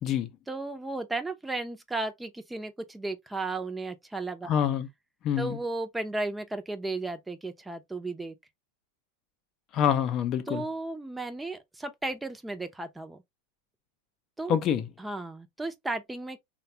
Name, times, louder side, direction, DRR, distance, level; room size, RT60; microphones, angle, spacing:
voice 1, 0.5-4.5 5.4-8.3 10.5-13.2 14.4-14.6 15.0-16.4, right 2 dB, 10° right, 0.6 m, -34 dB
voice 2, 4.5-4.9 5.2-5.6 9.7-10.6 14.5-14.9, left 9 dB, 40° left, 0.6 m, -26 dB
3.2 x 2.3 x 2.7 m
hypercardioid pair, 95°, 0 cm